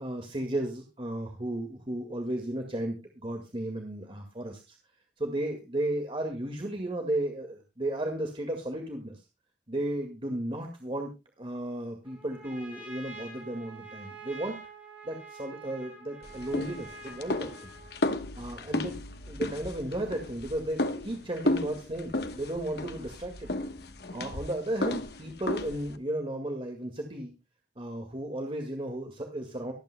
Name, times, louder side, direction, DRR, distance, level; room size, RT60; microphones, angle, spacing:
voice 1, 0.0-4.8 5.2-9.2 9.7-11.1 11.4-14.6 15.0-17.7 18.4-19.0 19.3-23.5 24.1-27.3 27.8-29.7, right 1 dB, 30° right, 3 dB, 1.9 m, -34 dB
Trumpet, 12.0-18.0, right 3 dB, 10° right, 5.7 m, -47 dB
sound 1, 16.2-26.0, left 2 dB, 65° left, 1.2 m, -34 dB
24.0 x 9.0 x 2.2 m, 0.26 s
head